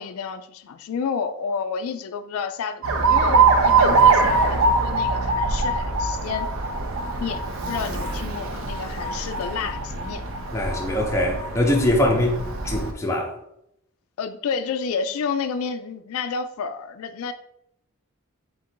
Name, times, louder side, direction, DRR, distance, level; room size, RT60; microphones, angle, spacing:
voice 1, 0.0-6.5 7.2-10.2 14.2-17.3, left 6 dB, 75° left, 0.3 m, -30 dB
Alarm, 2.8-12.9, right 4 dB, 65° right, 0.6 m, -22 dB
voice 2, 10.5-13.3, left 1 dB, 15° left, 0.5 m, -22 dB
3.8 x 2.5 x 4.4 m
head